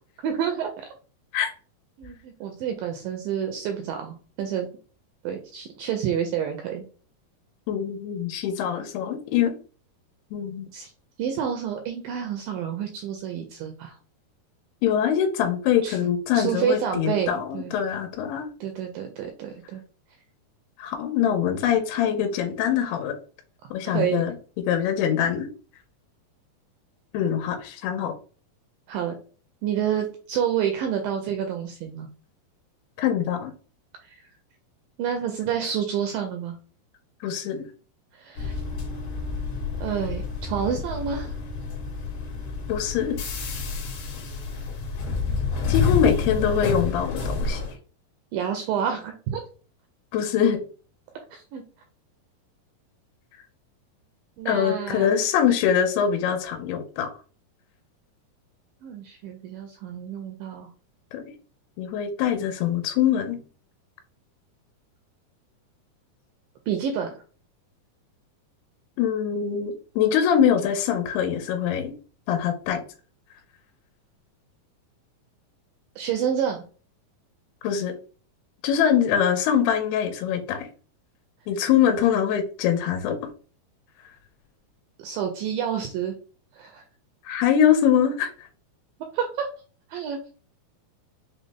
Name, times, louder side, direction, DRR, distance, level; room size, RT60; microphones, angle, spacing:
voice 1, 0.2-0.9 2.0-4.7 5.2-6.9 10.7-10.9 11.2-14.0 15.8-16.0 16.3-17.7 18.6-19.8 23.9-24.2 28.9-29.2 29.6-32.1 35.0-36.6 38.2-38.5 39.8-41.3 48.3-49.4 51.3-51.6 54.4-55.1 58.8-60.7 66.7-67.1 76.0-76.6 85.0-86.1 86.5-86.8 89.1-89.5 89.9-90.2, right 8 dB, 85° right, 4 dB, 2.0 m, -28 dB
voice 2, 7.7-9.5 10.3-10.7 14.8-18.5 20.8-23.1 23.7-24.3 24.7-25.5 27.1-28.1 33.0-33.5 37.2-37.7 42.7-43.2 45.7-47.6 50.1-50.6 54.5-57.1 61.1-61.2 61.8-63.4 69.0-71.9 72.3-72.8 77.6-77.9 78.6-80.7 81.5-83.2 87.3-88.3, left 8 dB, 85° left, 5 dB, 2.6 m, -23 dB
sound 1, 38.4-47.7, left 5 dB, 65° left, 2.2 m, -29 dB
6.2 x 2.1 x 3.4 m, 0.38 s
omnidirectional pair, 4.5 m